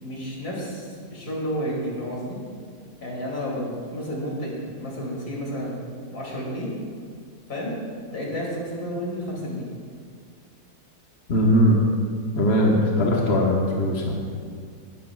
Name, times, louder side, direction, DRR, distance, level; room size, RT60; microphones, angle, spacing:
voice 1, 0.0-2.4 3.0-5.8 6.1-6.7 7.5-7.8 8.1-9.7 13.0-13.4, equal, 80° left, -4 dB, 3.3 m, -31 dB
voice 2, 11.3-11.8 12.3-14.2, equal, 45° left, -2 dB, 1.4 m, -20 dB
18.5 x 11.0 x 2.4 m, 2.1 s
omnidirectional pair, 1.6 m